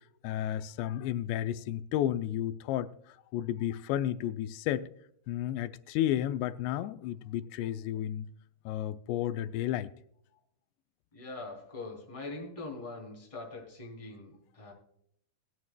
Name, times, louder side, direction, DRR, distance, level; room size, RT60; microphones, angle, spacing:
voice 1, 0.2-4.9 5.3-8.3 8.7-9.9, left 12 dB, 90° left, 2.8 m, -32 dB
voice 2, 11.1-14.7, left 2 dB, 10° left, 2.5 m, -42 dB
19.5 x 11.0 x 2.2 m
omnidirectional pair, 4.9 m